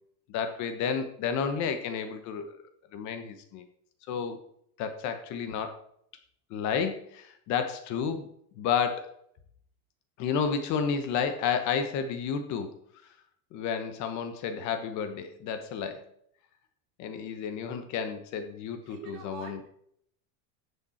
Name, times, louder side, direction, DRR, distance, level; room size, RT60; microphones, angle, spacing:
voice 1, 0.3-2.6 2.9-3.6 4.1-4.4 4.8-5.8 6.5-8.3 8.5-9.1 10.2-12.7 13.5-16.1 17.0-19.6, left 6 dB, 45° left, 8 dB, 1.3 m, -31 dB
voice 2, 18.8-19.7, right 5 dB, 50° right, 3 dB, 2.4 m, -44 dB
10.5 x 7.2 x 4.4 m, 0.68 s
cardioid pair, 175°, 42 cm